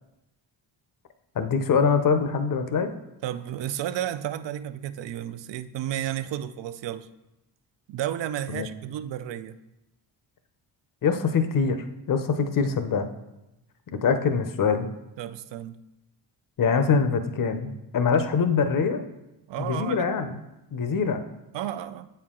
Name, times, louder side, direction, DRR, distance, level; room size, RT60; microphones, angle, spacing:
voice 1, 1.3-2.9 8.5-8.7 11.0-13.1 14.0-14.9 16.6-19.0 19.6-20.3 20.7-21.2, left 5 dB, 45° left, 9 dB, 0.7 m, -24 dB
voice 2, 3.2-7.1 7.9-9.6 15.2-15.8 19.5-20.1 21.5-22.1, right 11 dB, 70° right, 12 dB, 0.5 m, -32 dB
8.3 x 4.5 x 3.7 m, 0.95 s
cardioid pair, 90°, 46 cm